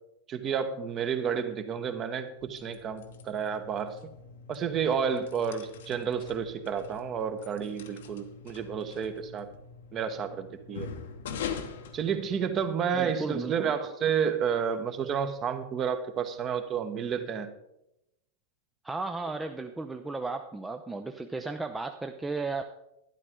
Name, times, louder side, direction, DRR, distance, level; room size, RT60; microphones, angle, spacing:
voice 1, 0.3-4.0 4.5-9.5 9.9-10.9 11.9-17.5, right 7 dB, 30° right, 9 dB, 1.1 m, -30 dB
sound 1, 2.3-12.8, left 6 dB, 60° left, 1.0 m, -43 dB
voice 2, 12.9-13.6 18.8-22.6, right 3 dB, 10° right, 6 dB, 0.5 m, -34 dB
12.0 x 11.0 x 3.7 m, 0.86 s
figure-of-eight pair, 90°, 0 cm